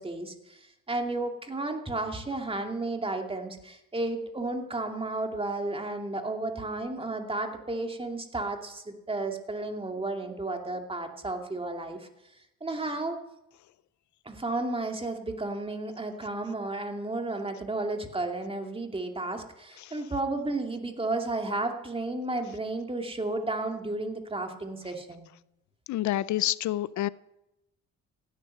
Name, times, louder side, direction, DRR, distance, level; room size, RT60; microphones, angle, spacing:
voice 1, 0.0-12.1 12.6-13.2 14.2-25.3, right 2 dB, 20° right, 4 dB, 2.6 m, -33 dB
voice 2, 25.9-27.1, left 14 dB, 70° left, 19 dB, 0.5 m, -28 dB
16.5 x 10.0 x 7.8 m, 0.88 s
cardioid pair, 90°, 30 cm